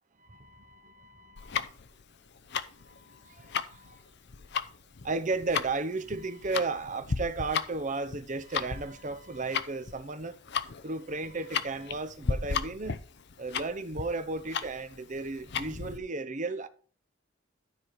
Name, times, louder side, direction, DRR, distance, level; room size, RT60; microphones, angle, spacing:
voice 1, 0.2-1.6 2.8-4.0 5.0-10.3 10.8-13.0 13.4-16.7, right 3 dB, 40° right, 0.9 m, -34 dB
Tick-tock, 1.4-16.0, left 6 dB, 55° left, 0.7 m, -35 dB
12.5 x 4.7 x 4.8 m
head